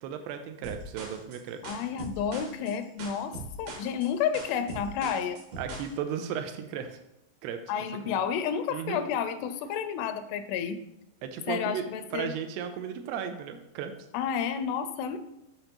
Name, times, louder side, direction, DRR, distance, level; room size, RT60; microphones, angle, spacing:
voice 1, 0.0-1.6 5.6-7.0 7.4-7.6 8.1-8.2 8.7-9.0 11.2-11.8 12.1-13.9, right 8 dB, 85° right, 7 dB, 2.7 m, -35 dB
sound 1, 0.6-5.9, right 2 dB, 65° right, 2.1 m, -41 dB
voice 2, 1.6-5.4 7.7-10.8 11.5-12.3 14.1-15.2, left 8 dB, 85° left, 10 dB, 2.6 m, -31 dB
7.8 x 6.5 x 2.9 m, 0.82 s
omnidirectional pair, 4.7 m